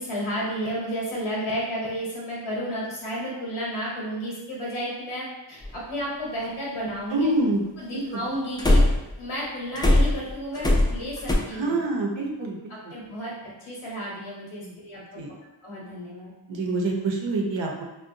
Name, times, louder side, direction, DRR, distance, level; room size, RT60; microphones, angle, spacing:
voice 1, 0.0-7.3 7.8-8.8 9.2-11.8 12.7-15.2 15.6-16.3, equal, 85° left, -5 dB, 0.9 m, -32 dB
sound 1, 5.6-5.7 8.6-9.1 9.8-11.4, left 1 dB, 10° left, 0.3 m, -19 dB
voice 2, 7.1-7.6 7.9-8.0 11.5-12.9 14.6-14.7 15.2-15.3 16.5-17.8, right 2 dB, 70° right, 0 dB, 0.7 m, -26 dB
3.7 x 2.1 x 2.6 m, 0.99 s
wide cardioid pair, 100°, 47 cm